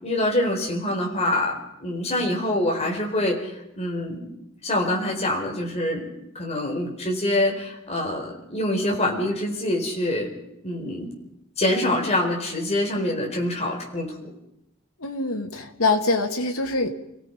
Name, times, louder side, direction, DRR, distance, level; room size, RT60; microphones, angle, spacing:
voice 1, 0.0-4.3 4.6-10.3 10.6-11.1 11.6-14.3, left 1 dB, 30° left, 0 dB, 4.5 m, -25 dB
voice 2, 15.0-16.9, left 3 dB, 90° left, 4 dB, 2.5 m, -24 dB
29.5 x 17.0 x 5.4 m, 0.84 s
head